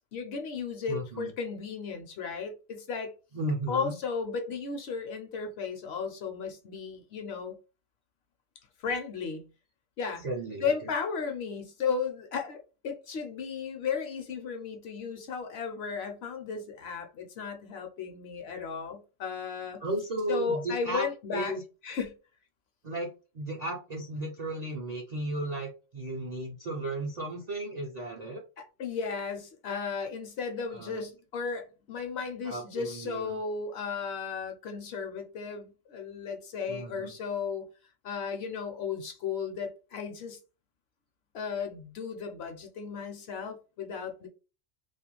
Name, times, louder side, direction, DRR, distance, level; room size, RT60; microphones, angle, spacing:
voice 1, 0.1-3.1 3.7-7.6 8.8-9.4 10.0-10.2 10.6-12.6 12.8-19.8 20.3-21.6 21.8-22.1 28.6-37.6 38.0-40.4 41.3-44.3, left 5 dB, 65° left, 0.7 m, -35 dB
voice 2, 0.9-1.3 3.3-4.0 10.2-10.9 19.8-21.6 22.8-23.1 23.3-28.4 30.7-31.0 32.4-33.4 36.7-37.1, right 2 dB, 55° right, 0.4 m, -35 dB
2.4 x 2.2 x 2.9 m
omnidirectional pair, 1.3 m